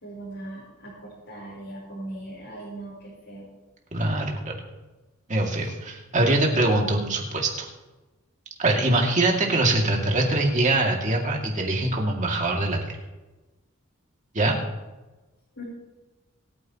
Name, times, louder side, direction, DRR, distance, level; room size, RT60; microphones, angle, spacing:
voice 1, 0.0-3.5 5.4-5.7 8.9-9.0 15.6-15.7, right 1 dB, 60° left, -7 dB, 4.4 m, -39 dB
voice 2, 3.9-4.6 5.3-7.7 8.6-13.0 14.3-14.6, right 2 dB, 35° right, 0 dB, 2.4 m, -23 dB
25.5 x 9.6 x 3.0 m, 1.1 s
head